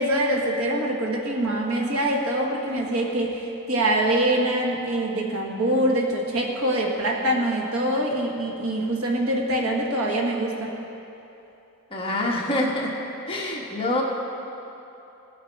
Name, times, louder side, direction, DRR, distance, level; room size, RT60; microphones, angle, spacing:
voice 1, 0.0-10.7, right 1 dB, 65° right, 0 dB, 1.6 m, -24 dB
voice 2, 11.9-12.9 13.3-14.0, left 1 dB, 25° left, -3 dB, 1.4 m, -25 dB
17.5 x 8.4 x 4.7 m, 2.9 s
head